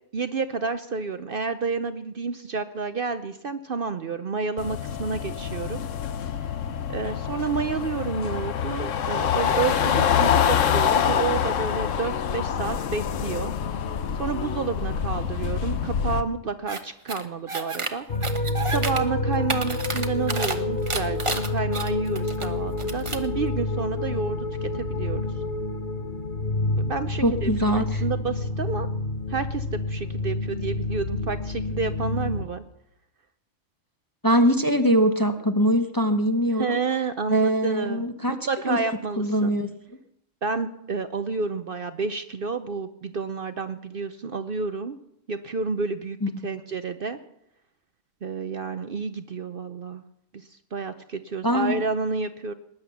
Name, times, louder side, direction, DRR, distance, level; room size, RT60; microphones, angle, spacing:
voice 1, 0.1-5.8 6.2-6.3 6.9-13.5 14.1-18.0 18.6-25.3 26.7-28.9 29.3-32.6 36.6-39.5 40.4-45.0 45.3-46.2 46.4-47.2 48.2-50.0 50.3-52.5, right 4 dB, 50° right, 10 dB, 0.8 m, -30 dB
sound 1, 4.6-16.2, left 8 dB, 75° left, 1.2 m, -26 dB
sound 2, 16.7-16.8 17.1-17.9 18.2-19.0 19.3-20.5 20.9-22.4 22.8-23.3, right 3 dB, 25° right, 1.0 m, -30 dB
sound 3, 18.1-32.4, left 2 dB, 45° left, 1.1 m, -28 dB
voice 2, 27.2-28.0 34.2-36.8 37.3-38.8 39.2-39.7 46.2-46.3 51.4-51.8, equal, 20° left, 6 dB, 0.9 m, -22 dB
19.5 x 10.5 x 7.0 m, 0.79 s
omnidirectional pair, 1.3 m